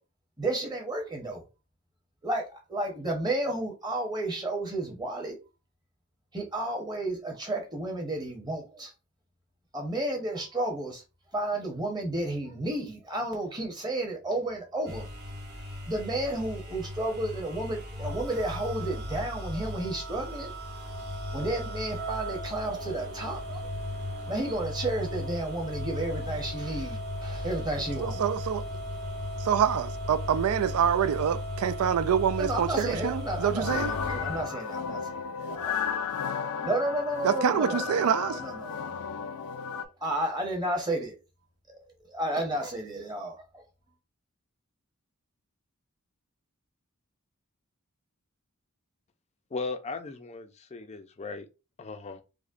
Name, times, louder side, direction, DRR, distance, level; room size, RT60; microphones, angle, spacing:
voice 1, 0.4-1.4 2.2-5.4 6.3-8.9 9.7-11.0 11.3-15.1 15.9-20.5 21.3-23.6 24.3-28.2 32.4-35.8 36.6-38.0 38.2-39.1 40.0-41.1 42.1-43.3, right 1 dB, 20° right, 0.9 m, -32 dB
sound 1, 14.9-34.4, left 1 dB, 50° right, 1.0 m, -36 dB
voice 2, 28.0-28.6 29.4-33.9 37.2-38.4, right 8 dB, 80° right, 0.3 m, -26 dB
sound 2, 33.6-39.9, left 7 dB, 85° left, 0.4 m, -33 dB
voice 3, 49.5-51.5 51.8-52.2, left 4 dB, 30° left, 0.4 m, -37 dB
4.9 x 2.1 x 2.5 m
head